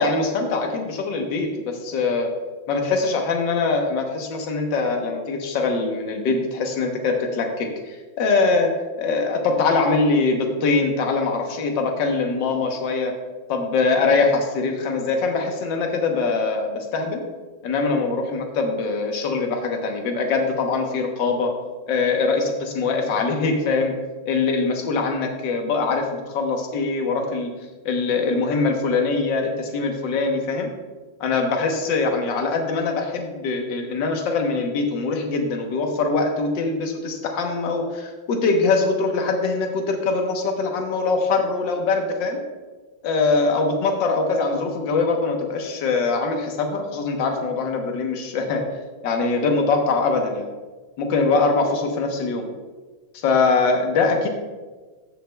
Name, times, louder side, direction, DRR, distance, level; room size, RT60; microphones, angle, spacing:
voice 1, 0.0-2.3 2.7-13.1 13.5-17.2 17.6-21.5 21.9-23.9 24.2-27.5 27.8-30.7 31.2-42.4 43.0-48.6 49.0-50.5 51.0-52.5 53.1-54.3, left 4 dB, 65° left, 3 dB, 1.7 m, -23 dB
14.5 x 6.6 x 2.3 m, 1.3 s
omnidirectional pair, 2.3 m